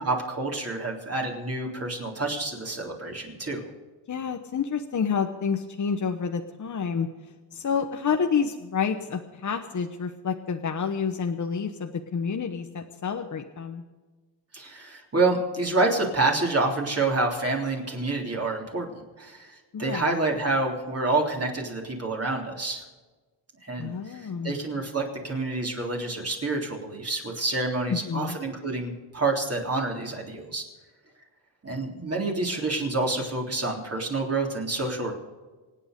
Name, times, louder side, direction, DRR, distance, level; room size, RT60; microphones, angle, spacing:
voice 1, 0.0-3.6 14.5-22.9 23.6-30.6 31.6-35.1, right 2 dB, 35° right, 0 dB, 3.6 m, -28 dB
voice 2, 4.1-7.1 7.5-13.8 19.7-20.1 23.8-24.6 27.9-28.4, left 6 dB, 40° left, 5 dB, 1.0 m, -29 dB
26.5 x 8.9 x 5.3 m, 1.3 s
cardioid pair, 105°, 44 cm